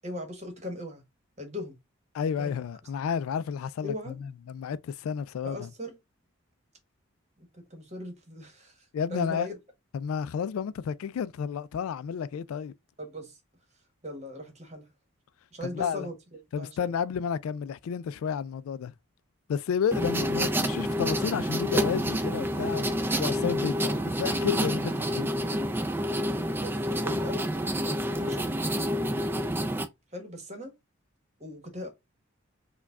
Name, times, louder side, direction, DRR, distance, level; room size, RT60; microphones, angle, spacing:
voice 1, 0.0-1.0 1.4-1.7 2.4-2.6 3.8-4.2 5.4-6.0 7.4-8.8 9.1-9.5 13.0-13.4 14.0-14.9 15.5-16.9 26.6-27.7 28.1-28.7 30.1-30.7 31.4-31.9, left 1 dB, 30° right, 1.1 m, -39 dB
voice 2, 2.1-5.7 8.9-9.5 9.9-12.7 15.6-16.1 16.5-18.9 19.5-25.3, left 7 dB, 80° left, 0.3 m, -31 dB
sound 1, 19.9-29.9, equal, 10° right, 0.3 m, -28 dB
4.6 x 2.2 x 2.3 m
head